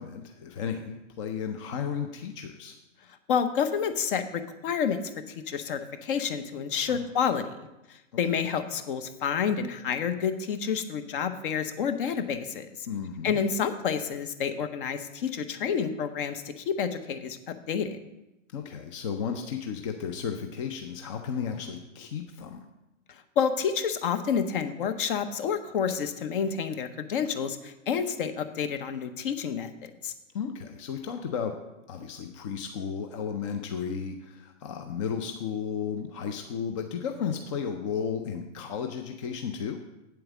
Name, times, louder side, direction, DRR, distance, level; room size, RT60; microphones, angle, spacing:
voice 1, 0.0-2.7 6.9-7.0 12.9-13.4 18.5-22.7 30.3-31.6 31.9-39.8, left 7 dB, 25° left, 6 dB, 0.5 m, -34 dB
voice 2, 3.3-5.0 5.5-7.6 7.9-12.9 13.2-17.4 17.7-18.0 23.1-30.1, left 7 dB, 45° left, 10 dB, 0.9 m, -29 dB
8.3 x 7.7 x 4.9 m, 0.96 s
hypercardioid pair, 135°, 38 cm